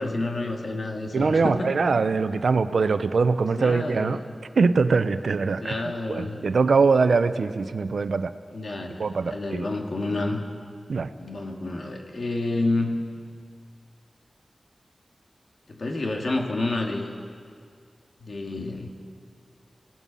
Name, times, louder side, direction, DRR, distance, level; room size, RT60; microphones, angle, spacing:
voice 1, 0.0-1.7 3.6-4.2 5.6-6.5 8.5-10.4 11.2-12.9 15.7-17.1 18.2-18.9, left 2 dB, 65° left, 2 dB, 2.6 m, -29 dB
voice 2, 1.1-4.2 4.6-5.8 6.1-8.3 9.0-9.7 10.9-11.1, right 4 dB, 85° right, 11 dB, 0.8 m, -22 dB
27.5 x 17.0 x 5.5 m, 2.1 s
cardioid pair, 55°, 0 cm